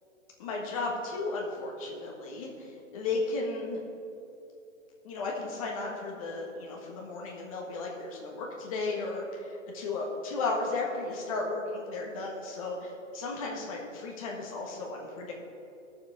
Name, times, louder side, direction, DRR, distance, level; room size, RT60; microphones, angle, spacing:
voice 1, 0.4-3.8 5.0-15.4, left 3 dB, 25° left, -1 dB, 1.5 m, -34 dB
16.5 x 7.0 x 3.6 m, 2.7 s
hypercardioid pair, 170°, 40 cm